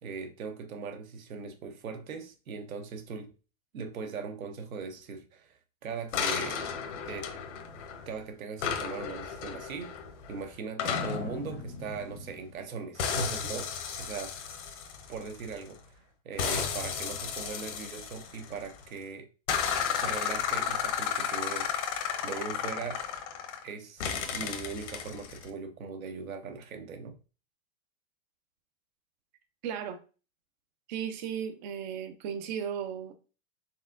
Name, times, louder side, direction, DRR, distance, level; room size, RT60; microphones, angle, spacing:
voice 1, 0.0-3.3 3.7-6.6 7.0-7.3 8.1-10.0 10.3-14.4 15.1-16.0 16.2-19.3 19.9-21.8 22.2-23.0 23.6-24.1 24.3-27.2, right 5 dB, 80° right, 1.0 m, -39 dB
sound 1, 6.1-8.2 8.6-12.6 13.0-15.8 16.4-18.8 19.5-23.7 24.0-25.5, left 7 dB, 60° left, 1.0 m, -33 dB
voice 2, 29.6-30.0 30.9-33.1, right 8 dB, 35° right, 0.4 m, -35 dB
4.2 x 3.5 x 2.4 m
hypercardioid pair, 125°, 41 cm